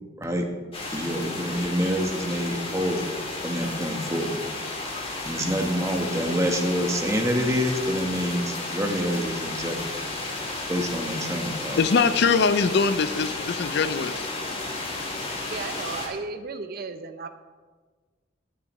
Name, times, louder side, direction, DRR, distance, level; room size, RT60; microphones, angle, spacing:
voice 1, 0.2-0.5 0.9-3.1 3.4-4.4 5.2-9.8 10.7-11.8, equal, 15° right, 3 dB, 1.1 m, -27 dB
sound 1, 0.7-16.1, left 2 dB, 30° left, 1.9 m, -33 dB
voice 2, 11.8-14.3, left 5 dB, 60° left, 12 dB, 0.4 m, -22 dB
voice 3, 15.4-17.3, right 4 dB, 50° right, 9 dB, 0.6 m, -34 dB
18.5 x 6.8 x 3.1 m, 1.4 s
head